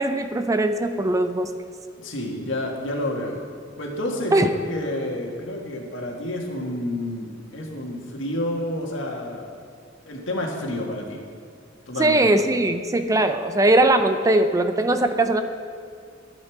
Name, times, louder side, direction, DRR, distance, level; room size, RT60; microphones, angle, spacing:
voice 1, 0.0-1.5 4.3-4.5 12.0-15.4, right 2 dB, 15° right, 9 dB, 0.4 m, -20 dB
voice 2, 2.0-3.4 3.8-9.4 10.0-11.2 11.9-12.2, left 1 dB, 75° left, 0 dB, 1.7 m, -29 dB
12.5 x 8.1 x 4.7 m, 2.3 s
head